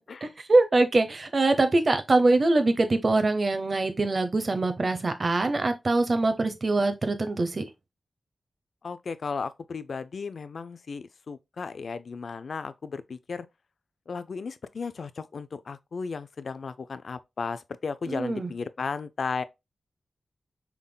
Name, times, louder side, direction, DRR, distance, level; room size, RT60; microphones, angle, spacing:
voice 1, 0.2-7.7 18.1-18.5, right 2 dB, 50° right, 0.8 m, -23 dB
voice 2, 8.8-13.5 14.1-19.4, left 5 dB, 70° left, 0.4 m, -35 dB
5.5 x 3.5 x 2.2 m
wide cardioid pair, 75°, 0 cm